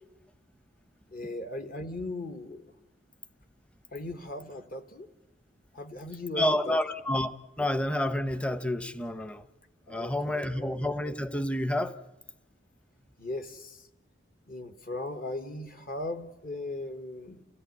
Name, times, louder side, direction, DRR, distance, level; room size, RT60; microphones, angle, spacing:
voice 1, 1.1-2.6 3.9-5.1 5.7-6.8 7.6-7.7 9.9-10.7 13.2-13.9 14.5-17.4, left 2 dB, 45° left, 7 dB, 1.4 m, -38 dB
voice 2, 6.4-7.3 7.6-9.4 9.9-12.0, left 1 dB, 5° left, 12 dB, 0.8 m, -29 dB
29.0 x 16.5 x 9.4 m, 1.0 s
head